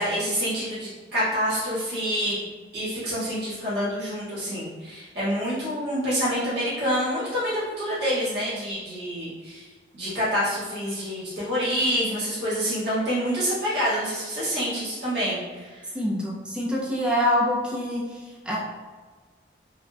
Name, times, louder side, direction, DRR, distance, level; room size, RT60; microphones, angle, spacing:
voice 1, 0.0-2.4 2.7-9.7 9.9-15.8, equal, 65° right, -11 dB, 1.3 m, -27 dB
voice 2, 15.9-18.0 18.5-18.6, left 1 dB, 5° right, -5 dB, 0.4 m, -25 dB
3.7 x 2.1 x 2.2 m, 1.4 s
head